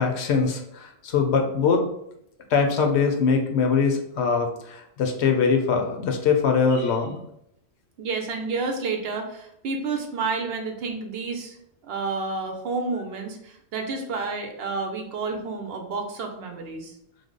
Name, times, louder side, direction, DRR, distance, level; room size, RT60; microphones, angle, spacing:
voice 1, 0.0-1.8 2.5-7.2, left 5 dB, 80° left, 4 dB, 0.9 m, -22 dB
voice 2, 8.0-11.6 11.9-17.0, right 4 dB, 70° right, 4 dB, 0.8 m, -30 dB
3.3 x 2.1 x 3.6 m, 0.75 s
omnidirectional pair, 1.1 m